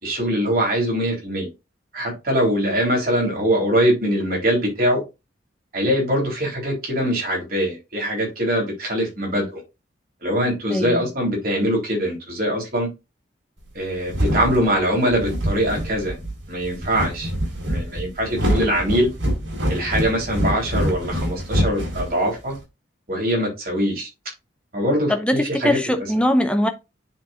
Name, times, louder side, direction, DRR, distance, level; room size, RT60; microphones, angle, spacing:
voice 1, 0.0-1.5 1.9-5.0 5.7-9.6 10.2-12.9 13.7-16.1 16.5-17.3 17.7-19.1 19.7-22.6 23.1-24.1 24.7-25.8, equal, 50° right, 3.8 m, -22 dB
voice 2, 10.7-11.1 25.1-26.7, left 1 dB, 5° left, 0.6 m, -21 dB
sound 1, 13.7-22.6, equal, 80° right, 4.3 m, -25 dB
9.8 x 4.6 x 2.5 m
head